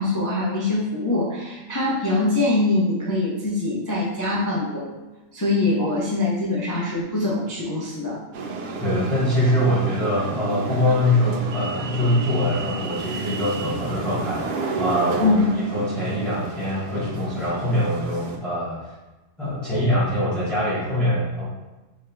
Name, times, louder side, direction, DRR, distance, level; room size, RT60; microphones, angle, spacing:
voice 1, 0.0-4.9 5.3-8.2 15.2-15.5, left 2 dB, 25° left, -6 dB, 0.4 m, -23 dB
sound 1, 8.3-18.4, right 4 dB, 80° right, 0.5 m, -32 dB
voice 2, 8.8-15.4 15.7-18.9 19.4-21.5, left 1 dB, ahead, -11 dB, 1.1 m, -23 dB
3.6 x 3.2 x 4.5 m, 1.1 s
omnidirectional pair, 1.6 m